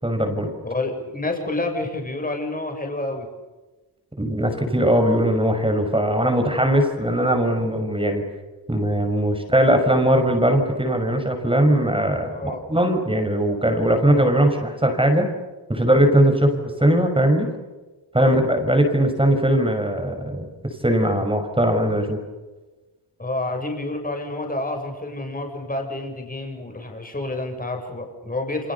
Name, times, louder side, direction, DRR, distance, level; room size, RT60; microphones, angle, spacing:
voice 1, 0.0-0.5 4.2-8.2 8.7-15.3 15.7-17.5 18.1-22.2, right 1 dB, 15° right, 5 dB, 6.0 m, -20 dB
voice 2, 0.6-3.3 7.3-7.4 12.3-12.6 18.2-18.4 23.2-28.7, left 2 dB, 20° left, 3 dB, 7.5 m, -29 dB
29.5 x 27.0 x 7.0 m, 1.2 s
wide cardioid pair, 110°, 40 cm